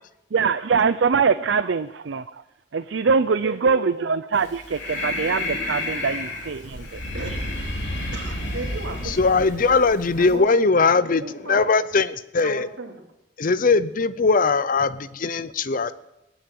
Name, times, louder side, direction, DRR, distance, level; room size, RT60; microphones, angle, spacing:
voice 1, 0.3-2.4 2.7-7.0, right 5 dB, 65° right, 12 dB, 0.5 m, -23 dB
voice 2, 1.3-1.7 3.4-4.0 5.0-5.2 7.1-7.5 8.1-10.7 11.2-11.7 12.4-13.0, right 2 dB, 85° right, 2 dB, 2.8 m, -36 dB
Breathing, 4.4-10.3, left 1 dB, 65° left, 4.0 m, -31 dB
voice 3, 9.2-11.2 11.5-12.7 13.4-15.9, left 4 dB, 45° left, 15 dB, 0.6 m, -20 dB
19.5 x 8.9 x 7.6 m, 0.91 s
head